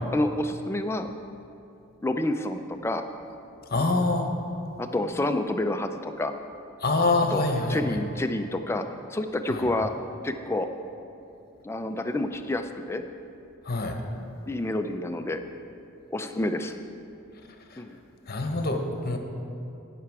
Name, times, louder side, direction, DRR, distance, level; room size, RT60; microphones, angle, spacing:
voice 1, 0.1-1.1 2.0-3.0 4.8-6.3 7.3-7.4 7.7-8.8 9.1-9.9 10.2-10.7 11.6-13.0 14.5-15.4 16.1-16.8 17.8-18.0, left 1 dB, 10° left, 7 dB, 0.4 m, -28 dB
voice 2, 3.7-4.3 6.8-7.8 9.5-9.7 13.7-14.0 18.3-19.2, left 2 dB, 45° left, 4 dB, 1.0 m, -25 dB
16.0 x 5.9 x 4.7 m, 2.8 s
head